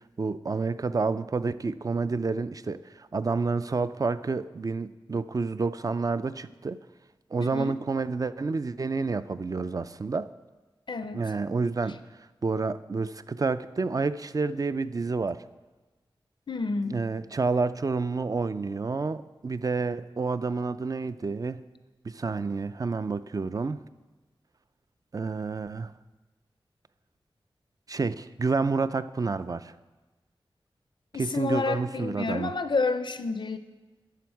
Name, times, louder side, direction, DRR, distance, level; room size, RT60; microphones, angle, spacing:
voice 1, 0.2-6.8 7.3-10.3 11.1-12.0 12.4-15.4 16.9-21.6 22.0-23.8 25.1-25.9 27.9-29.7 31.2-32.5, right 4 dB, 40° right, 14 dB, 0.4 m, -29 dB
voice 2, 7.4-7.8 10.9-11.2 16.5-17.0 31.1-33.6, left 3 dB, 60° left, 11 dB, 0.4 m, -29 dB
10.5 x 7.0 x 4.7 m, 1.2 s
wide cardioid pair, 55°, 9 cm